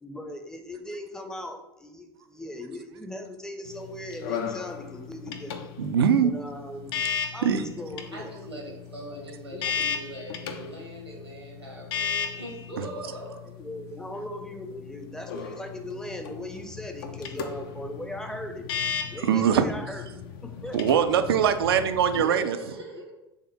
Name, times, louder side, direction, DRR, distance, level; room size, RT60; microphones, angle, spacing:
voice 1, 0.0-5.7 6.2-7.0 7.3-8.3 9.5-9.6 13.5-18.7 19.1-20.8, left 1 dB, 5° left, 4 dB, 0.6 m, -39 dB
sound 1, 3.6-22.2, left 7 dB, 55° left, 0.5 m, -36 dB
voice 2, 5.8-6.3 7.4-7.6 12.8-12.9 19.2-19.7 20.7-22.6, right 8 dB, 70° right, 9 dB, 0.4 m, -22 dB
voice 3, 8.0-13.4 22.1-23.1, right 1 dB, 90° right, -1 dB, 1.2 m, -40 dB
3.6 x 3.4 x 4.1 m, 0.90 s
figure-of-eight pair, 75°, 13 cm